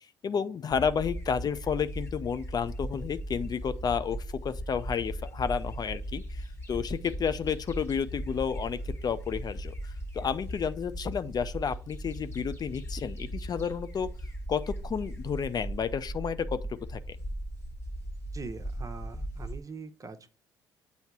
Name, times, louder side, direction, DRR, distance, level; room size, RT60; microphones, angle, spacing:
voice 1, 0.2-14.1 14.5-17.2, left 7 dB, 40° left, 0.4 m, -31 dB
sound 1, 0.7-19.6, right 1 dB, 25° left, 1.3 m, -38 dB
voice 2, 18.3-20.3, right 4 dB, 35° right, 0.8 m, -42 dB
7.8 x 2.8 x 4.5 m
hypercardioid pair, 50°, 10 cm